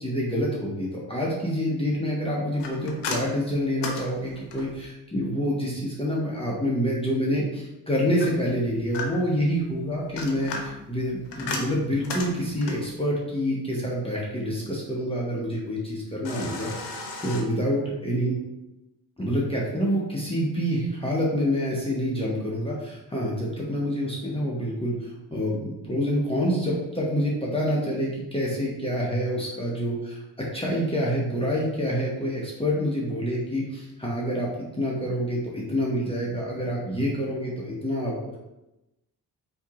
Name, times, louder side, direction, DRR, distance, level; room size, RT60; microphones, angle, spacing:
voice 1, 0.0-18.4 19.2-34.5 34.8-38.4, equal, 15° left, -5 dB, 1.0 m, -27 dB
sound 1, 2.6-4.9 8.2-9.4 10.0-12.9 16.2-17.4, left 3 dB, 80° left, 0.7 m, -35 dB
4.4 x 2.9 x 2.4 m, 0.94 s
supercardioid pair, 60°, 41 cm